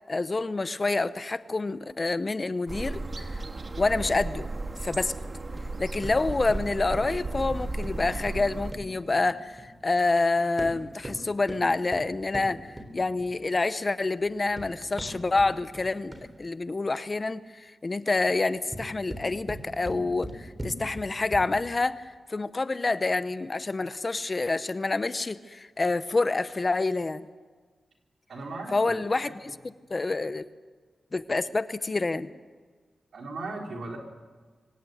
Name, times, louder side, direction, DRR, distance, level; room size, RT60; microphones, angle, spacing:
voice 1, 0.1-3.4 3.8-4.5 4.8-5.1 5.8-27.2 28.7-30.4 31.1-32.3, left 3 dB, 35° left, 13 dB, 0.8 m, -27 dB
sound 1, 2.7-8.7, right 2 dB, 40° right, 1.7 m, -34 dB
sound 2, 5.6-9.8 10.4-13.5 14.2-16.5 18.5-21.7, right 1 dB, 20° right, 3.5 m, -41 dB
voice 2, 28.3-29.0 33.1-34.0, right 3 dB, 80° right, 1 dB, 3.8 m, -37 dB
24.5 x 17.5 x 8.0 m, 1.5 s
wide cardioid pair, 90°, 0 cm